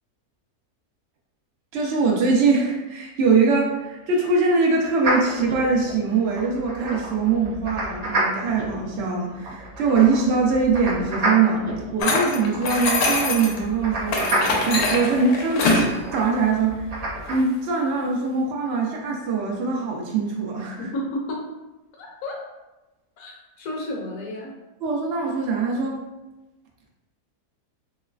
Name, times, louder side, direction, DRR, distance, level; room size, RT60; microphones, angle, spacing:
voice 1, 1.7-20.8 24.8-26.1, right 4 dB, 80° right, -1 dB, 0.5 m, -22 dB
sound 1, 5.0-17.3, right 2 dB, 55° right, 0.9 m, -30 dB
sound 2, 12.0-13.6 14.1-15.9, left 2 dB, 85° left, 1.2 m, -23 dB
voice 2, 20.8-21.5 22.0-22.4 23.2-24.5, left 1 dB, 60° left, -2 dB, 1.1 m, -32 dB
3.1 x 2.9 x 2.3 m, 1.0 s
omnidirectional pair, 1.7 m